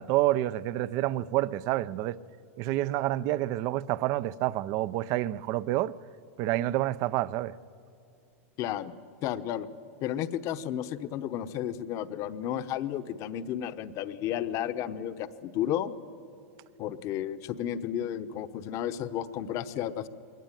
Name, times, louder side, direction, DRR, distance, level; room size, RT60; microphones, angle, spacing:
voice 1, 0.0-2.2 2.6-5.9 6.4-7.5, right 15 dB, 45° right, 0.6 m, -28 dB
voice 2, 8.6-8.9 9.2-9.7 10.0-15.9 16.8-20.1, left 10 dB, 40° left, 1.0 m, -32 dB
22.0 x 18.5 x 9.1 m
supercardioid pair, 130°, 8 cm